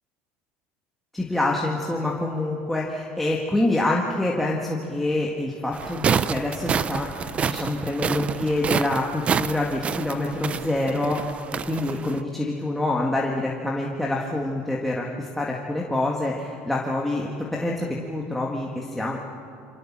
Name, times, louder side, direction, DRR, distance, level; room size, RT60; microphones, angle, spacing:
voice 1, 1.1-11.3 11.7-19.2, left 2 dB, 5° left, -3 dB, 1.7 m, -26 dB
sound 1, 5.7-12.2, right 6 dB, 20° right, 0.6 m, -28 dB
28.5 x 26.0 x 7.4 m, 2.4 s
cardioid pair, 165°, 6 cm